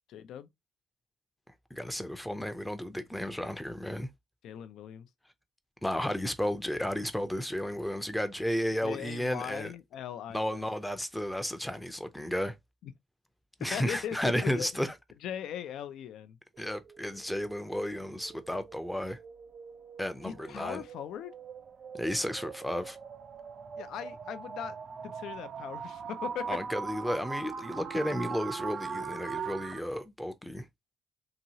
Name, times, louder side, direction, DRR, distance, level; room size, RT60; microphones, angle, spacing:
voice 1, 0.1-0.5 4.4-5.1 8.8-10.6 12.8-12.9 13.7-14.7 15.2-16.7 20.2-21.3 23.8-24.8 25.0-26.6, left 9 dB, 80° left, 0.3 m, -39 dB
voice 2, 1.7-4.1 5.8-9.7 10.3-12.5 13.6-14.9 16.6-19.2 20.0-20.8 21.9-23.0 26.5-30.7, equal, 5° left, 0.5 m, -33 dB
sound 1, 16.6-29.8, right 6 dB, 55° right, 0.4 m, -41 dB
2.8 x 2.7 x 2.7 m
cardioid pair, 90°, 0 cm